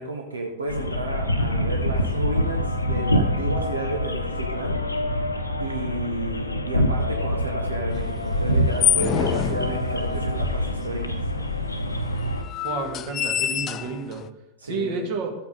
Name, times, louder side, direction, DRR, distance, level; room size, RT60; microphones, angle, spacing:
voice 1, 0.0-4.8 5.6-11.2 14.6-15.0, right 2 dB, 75° right, 2 dB, 1.1 m, -32 dB
sound 1, 0.7-12.4, left 1 dB, 85° left, 0.8 m, -25 dB
sound 2, 8.2-10.3 11.1-11.2 11.4-11.5 12.2-14.3, left 10 dB, 30° left, 0.4 m, -26 dB
voice 2, 12.5-14.2 14.6-15.3, right 4 dB, 45° right, 2 dB, 2.1 m, -30 dB
13.5 x 8.4 x 4.0 m, 0.89 s
figure-of-eight pair, 90°, 0 cm